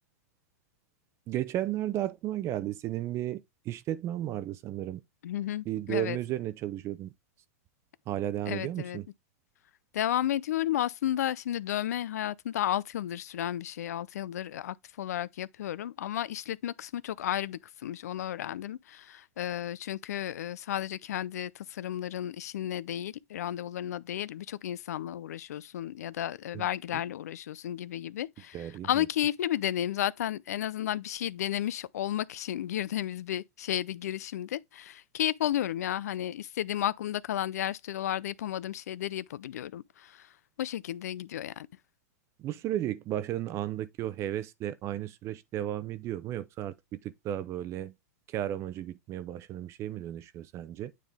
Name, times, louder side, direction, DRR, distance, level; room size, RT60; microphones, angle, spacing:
voice 1, 1.3-3.4 3.7-5.0 5.7-7.1 8.1-9.1 26.5-26.7 28.5-29.1 42.4-47.9 48.3-50.9, right 12 dB, 30° right, 0.6 m, -34 dB
voice 2, 5.2-6.2 8.5-9.0 9.9-40.3 40.6-41.7, left 12 dB, 80° left, 0.4 m, -33 dB
9.3 x 3.6 x 3.4 m
hypercardioid pair, 125°, 9 cm